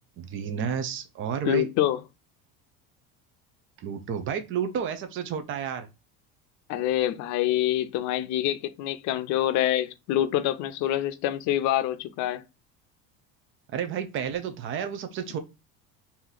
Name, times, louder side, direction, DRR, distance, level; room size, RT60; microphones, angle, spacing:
voice 1, 0.2-1.7 3.8-5.9 13.7-15.4, right 7 dB, 40° right, 0.6 m, -31 dB
voice 2, 1.5-2.0 6.7-12.4, left 12 dB, 60° left, 0.5 m, -26 dB
3.0 x 2.7 x 3.9 m
cardioid pair, 140°, 32 cm